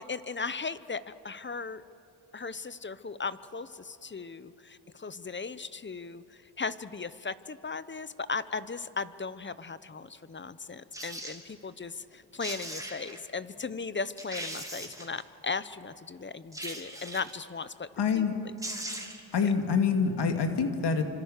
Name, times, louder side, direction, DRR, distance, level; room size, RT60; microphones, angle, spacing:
voice 1, 0.0-1.8 2.3-17.9 18.1-18.2 19.4-19.5, left 4 dB, 25° left, 14 dB, 0.9 m, -37 dB
sound 1, 10.9-11.4 12.1-12.2 12.4-13.2 13.7-13.8 14.2-15.2 16.5-17.4 18.3-18.4 18.6-19.3 19.6-19.7, right 1 dB, 10° right, 3.3 m, -39 dB
voice 2, 18.0-18.3 19.3-21.0, left 5 dB, 65° left, 5 dB, 2.6 m, -26 dB
30.0 x 26.0 x 6.7 m, 2.8 s
cardioid pair, 95°, 43 cm